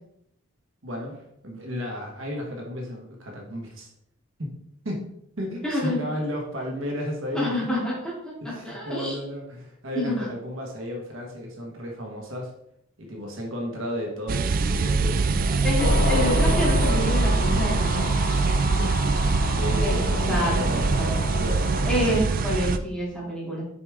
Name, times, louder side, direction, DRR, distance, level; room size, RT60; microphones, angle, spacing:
voice 1, 0.8-3.9 4.4-4.5 4.8-5.0 5.4-7.5 8.4-12.5 13.0-15.6 18.7-18.9 19.5-22.1, equal, 65° right, 0 dB, 1.3 m, -33 dB
voice 2, 5.6-6.0 7.3-9.1 9.9-10.3 15.6-18.1 19.8-20.0 20.3-20.5 21.0-21.1 21.8-23.6, left 1 dB, 5° left, -7 dB, 2.7 m, -27 dB
sound 1, 14.3-22.8, right 4 dB, 40° right, 0.3 m, -23 dB
sound 2, 15.8-22.2, left 1 dB, 35° left, 0.7 m, -28 dB
6.9 x 5.0 x 3.5 m, 0.75 s
head